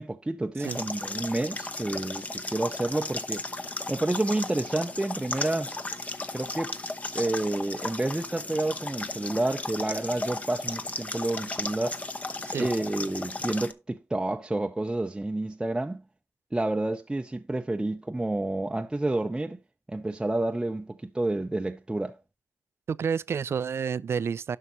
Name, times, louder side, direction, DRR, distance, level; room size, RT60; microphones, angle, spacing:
voice 1, 0.0-3.4 3.9-5.7 6.3-6.8 7.1-12.0 12.6-16.0 16.5-19.6 19.9-22.2, right 2 dB, 15° right, 0.7 m, -29 dB
sound 1, 0.6-13.7, left 2 dB, 30° left, 1.0 m, -35 dB
voice 2, 22.9-24.6, right 6 dB, 55° right, 0.5 m, -29 dB
11.0 x 5.8 x 4.0 m
cardioid pair, 85°, 5 cm